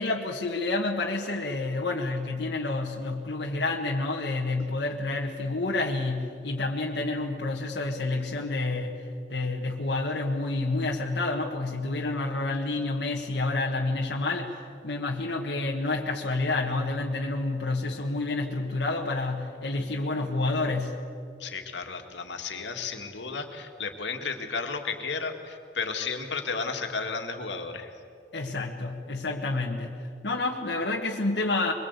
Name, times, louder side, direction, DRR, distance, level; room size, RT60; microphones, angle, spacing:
voice 1, 0.0-9.0 9.3-21.0 28.3-31.7, left 2 dB, 70° left, -1 dB, 1.6 m, -29 dB
voice 2, 21.4-27.9, left 4 dB, 90° left, 4 dB, 2.2 m, -33 dB
23.5 x 22.0 x 8.3 m, 2.5 s
head